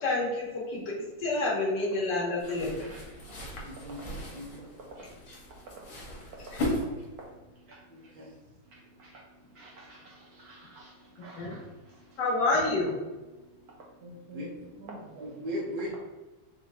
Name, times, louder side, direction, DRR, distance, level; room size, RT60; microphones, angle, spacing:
voice 1, 0.0-2.9 6.5-6.6 11.4-11.6 12.2-13.0, left 2 dB, 60° left, -4 dB, 1.7 m, -29 dB
sound 1, 2.4-7.4, left 1 dB, 85° left, 2.0 m, -37 dB
voice 2, 3.6-4.0 4.3-4.7 7.9-8.3 14.3-14.5 15.2-16.0, equal, 45° right, -3 dB, 0.6 m, -37 dB
voice 3, 7.7-8.1 8.7-9.3 9.5-12.2 14.0-14.5 14.8-15.3, right 1 dB, 75° right, -2 dB, 0.8 m, -49 dB
4.3 x 2.9 x 3.4 m, 1.1 s
omnidirectional pair, 2.2 m